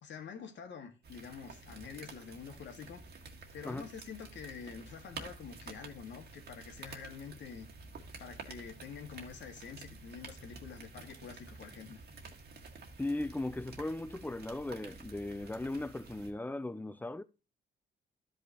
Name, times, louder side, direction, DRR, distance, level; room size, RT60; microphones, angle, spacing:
voice 1, 0.0-3.0 3.5-7.7 8.2-12.0, left 6 dB, 65° left, 2.0 m, -47 dB
sound 1, 1.0-16.3, right 4 dB, 55° right, 1.8 m, -50 dB
voice 2, 13.0-17.2, left 2 dB, 10° left, 0.5 m, -37 dB
12.5 x 5.6 x 3.0 m
cardioid pair, 90°, 20 cm